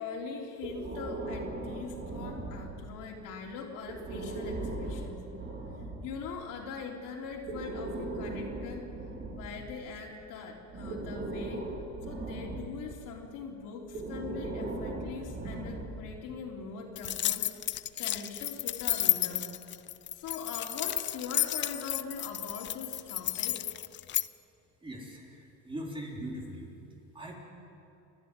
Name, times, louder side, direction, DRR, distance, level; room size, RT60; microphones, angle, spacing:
voice 1, 0.0-5.2 6.0-8.9 9.3-11.7 12.0-19.5 20.1-23.6, left 5 dB, 65° left, 0 dB, 3.6 m, -42 dB
Breathing, 0.6-3.0 3.8-6.1 7.2-10.1 10.7-12.9 13.9-16.2, right 2 dB, 30° right, 4.0 m, -38 dB
sound 1, 17.0-24.3, left 13 dB, 35° left, 0.5 m, -32 dB
voice 2, 24.8-26.7 27.1-27.3, right 1 dB, 15° right, -1 dB, 3.7 m, -40 dB
29.5 x 11.5 x 9.7 m, 2.7 s
cardioid pair, 145°, 34 cm